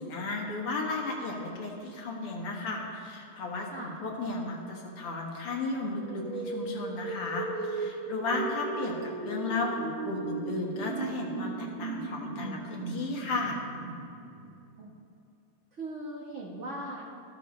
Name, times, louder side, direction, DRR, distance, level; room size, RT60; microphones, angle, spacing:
voice 1, 0.0-13.6, left 3 dB, 85° left, 0 dB, 2.4 m, -34 dB
sound 1, 6.0-14.9, right 3 dB, 70° right, 1.8 m, -37 dB
voice 2, 15.7-17.1, right 1 dB, 40° right, -3 dB, 1.2 m, -39 dB
13.5 x 13.0 x 3.2 m, 2.5 s
omnidirectional pair, 2.4 m